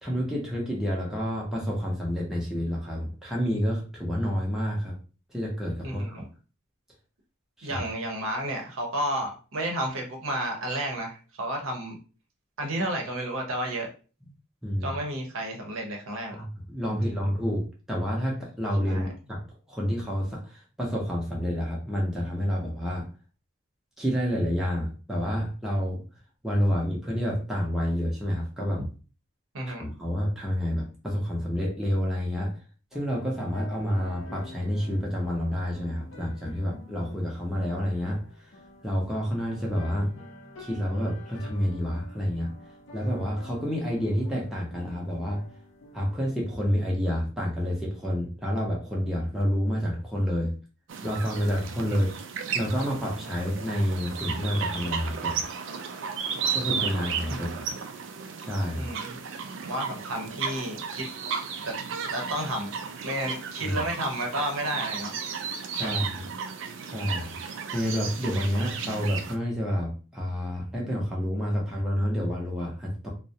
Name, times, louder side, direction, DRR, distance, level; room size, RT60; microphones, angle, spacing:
voice 1, 0.0-4.9 5.3-6.2 7.6-7.8 14.2-14.3 14.6-14.9 16.3-17.6 17.9-19.4 19.7-23.1 24.0-26.0 26.4-28.8 29.7-32.5 32.9-38.5 38.8-40.1 40.6-42.5 42.9-45.4 45.9-50.5 51.0-52.1 52.5-55.3 56.5-57.7 58.4-58.9 63.6-63.8 65.7-66.3 66.8-67.3 67.7-73.1, equal, ahead, -4 dB, 0.5 m, -29 dB
voice 2, 5.8-6.2 7.6-12.0 12.6-13.9 14.8-16.4 16.9-17.0 18.9-19.1 29.5-29.8 51.9-52.0 57.3-57.4 58.7-59.2 59.6-61.1 61.6-61.7 62.1-62.7 63.0-65.1 65.7-66.0, right 1 dB, 75° right, 1 dB, 0.7 m, -31 dB
sound 1, 32.9-46.3, left 2 dB, 65° left, 0.5 m, -48 dB
sound 2, 50.9-69.4, right 6 dB, 60° right, 0.3 m, -34 dB
2.4 x 2.0 x 2.6 m, 0.36 s
head